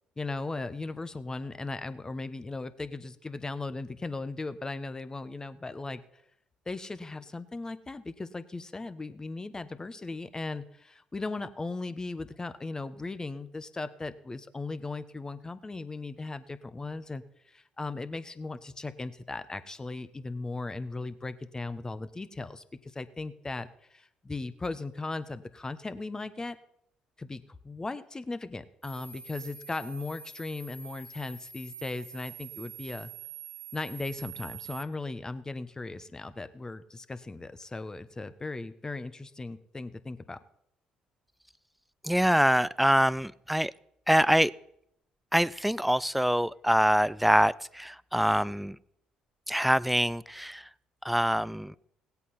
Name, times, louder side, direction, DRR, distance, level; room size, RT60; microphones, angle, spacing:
voice 1, 0.2-6.2 6.7-26.6 27.2-33.1 33.7-40.4, left 3 dB, 20° left, 12 dB, 1.1 m, -37 dB
sound 1, 28.8-34.8, right 7 dB, 75° right, 1.4 m, -46 dB
voice 2, 42.0-43.7 44.1-44.5 45.3-48.8 49.5-50.7 51.0-51.7, equal, ahead, 20 dB, 0.4 m, -25 dB
17.0 x 8.3 x 5.7 m, 0.75 s
hypercardioid pair, 55°, 3 cm